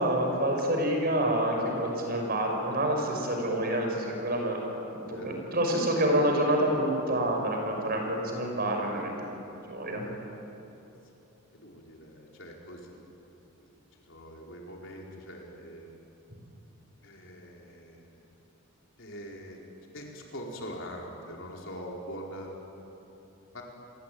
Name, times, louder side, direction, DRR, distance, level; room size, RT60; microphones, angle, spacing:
voice 1, 0.0-4.6 4.9-10.0, right 1 dB, 45° right, 2 dB, 5.7 m, -28 dB
voice 2, 10.0-10.5 11.5-13.0 13.6-13.7 14.1-15.9 17.0-18.1 19.0-19.6 19.9-22.5 23.5-23.6, equal, 60° left, -1 dB, 4.7 m, -43 dB
28.5 x 22.0 x 9.4 m, 3.0 s
head